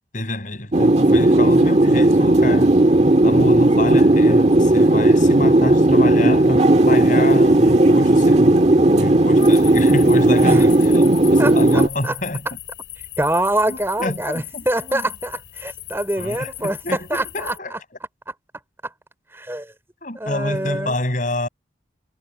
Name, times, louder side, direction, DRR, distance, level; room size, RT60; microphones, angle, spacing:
voice 1, 0.1-2.8 3.2-12.5 13.7-15.1 16.2-17.8 20.0-21.5, left 1 dB, 45° left, 7.1 m, -27 dB
sound 1, 0.7-11.9, right 1 dB, 35° right, 1.7 m, -14 dB
sound 2, 9.4-17.6, left 14 dB, 75° left, 6.2 m, -37 dB
voice 2, 11.4-12.1 13.2-17.5 18.8-18.9 19.3-19.7 20.1-21.0, right 1 dB, 15° right, 3.9 m, -24 dB
head